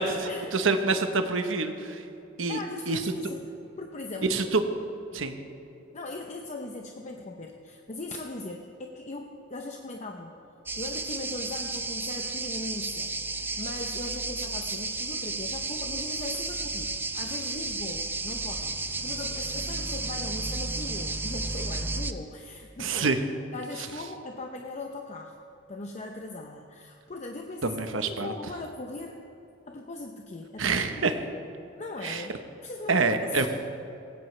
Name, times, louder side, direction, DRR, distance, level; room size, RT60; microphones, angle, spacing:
voice 1, 0.0-2.0 2.4-2.6 2.9-3.0 4.3-4.6 5.1-5.3 22.8-23.2 27.6-28.3 30.6-31.1 32.0-32.2 32.9-33.5, right 3 dB, 80° right, 7 dB, 1.0 m, -26 dB
voice 2, 2.5-3.5 3.8-4.5 5.9-10.4 10.8-23.1 23.5-25.4 25.7-29.2 29.7-31.1 31.8-33.5, left 2 dB, 35° left, 2 dB, 0.7 m, -39 dB
sound 1, 10.7-22.1, right 3 dB, 10° right, 0.5 m, -33 dB
18.0 x 16.0 x 3.3 m, 2.8 s
head